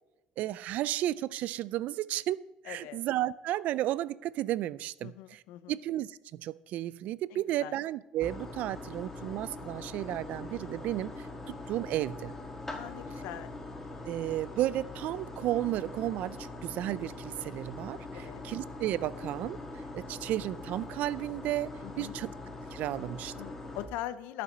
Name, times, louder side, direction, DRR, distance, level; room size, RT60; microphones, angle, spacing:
voice 1, 0.4-5.4 5.7-12.3 14.0-19.6 19.9-22.3 22.7-23.3, right 14 dB, 65° right, 0.4 m, -33 dB
voice 2, 2.6-3.0 5.0-5.8 7.3-7.8 12.7-13.5 18.1-18.4 21.8-22.2 23.3-24.4, left 13 dB, 90° left, 0.6 m, -42 dB
sound 1, 8.2-23.9, left 2 dB, 10° left, 1.5 m, -42 dB
12.5 x 6.9 x 5.1 m
cardioid pair, 125°, 3 cm